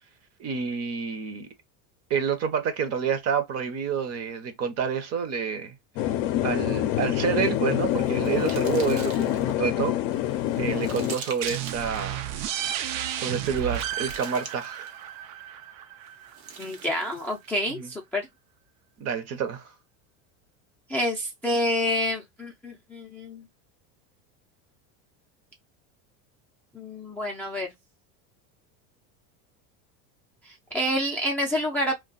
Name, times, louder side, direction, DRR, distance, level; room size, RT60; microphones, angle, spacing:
voice 1, 0.4-1.5 2.1-5.7 6.4-9.9 10.6-12.3 13.1-14.9 17.8-17.9 19.0-19.7, right 7 dB, 40° right, 0.7 m, -28 dB
sound 1, 6.0-11.1, left 13 dB, 60° left, 0.5 m, -26 dB
sound 2, 7.3-9.5 10.1-12.0 12.9-15.1 16.1-17.6, right 6 dB, 90° right, 1.0 m, -44 dB
sound 3, 11.4-16.9, right 10 dB, 75° right, 0.6 m, -33 dB
voice 2, 16.6-18.3 20.9-23.4 26.7-27.7 30.4-31.9, equal, 5° left, 0.4 m, -28 dB
2.2 x 2.2 x 3.9 m
supercardioid pair, 120°, 40 cm